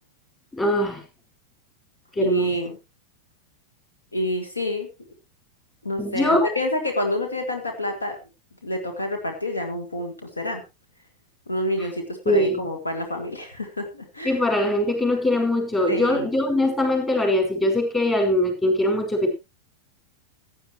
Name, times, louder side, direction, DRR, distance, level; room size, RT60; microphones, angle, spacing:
voice 1, 0.5-1.0 2.1-2.6 6.0-6.5 12.2-12.6 14.2-19.4, left 1 dB, 15° left, 3 dB, 5.0 m, -22 dB
voice 2, 2.2-2.8 4.1-4.9 5.8-8.2 8.6-10.6 11.5-14.4 15.9-16.3, left 1 dB, 80° left, 4 dB, 2.1 m, -28 dB
16.5 x 10.0 x 3.0 m, 0.26 s
figure-of-eight pair, 90°, 0 cm